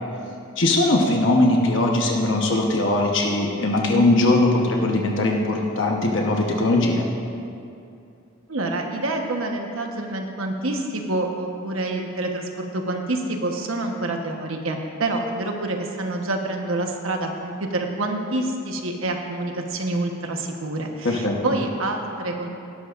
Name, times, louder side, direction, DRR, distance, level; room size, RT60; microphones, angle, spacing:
voice 1, 0.6-7.1 21.0-21.4, left 2 dB, 60° left, 0 dB, 1.0 m, -20 dB
voice 2, 8.5-22.5, right 2 dB, 75° right, 2 dB, 1.2 m, -27 dB
17.5 x 11.5 x 2.5 m, 2.6 s
head